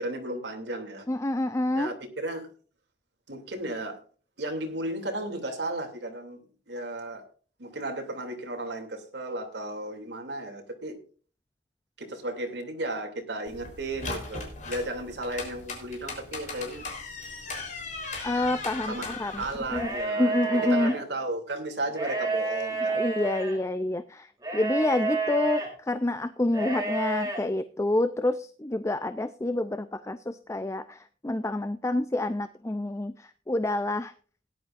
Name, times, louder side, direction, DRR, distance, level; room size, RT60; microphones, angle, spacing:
voice 1, 0.0-1.1 1.7-2.5 3.3-4.0 4.4-7.2 7.6-11.0 12.0-16.9 18.9-19.1 19.4-20.3 20.6-23.0 24.9-25.0, right 1 dB, 75° right, 4 dB, 2.7 m, -34 dB
voice 2, 1.1-2.0 18.2-19.4 19.7-19.9 20.2-21.0 22.9-34.1, left 1 dB, 15° left, 11 dB, 0.4 m, -28 dB
sound 1, 13.5-20.0, left 3 dB, 45° left, 3.8 m, -38 dB
sound 2, 19.6-20.9 21.9-23.6 24.4-25.7 26.5-27.4, right 3 dB, 20° right, 3.3 m, -30 dB
18.0 x 10.5 x 2.5 m, 0.40 s
head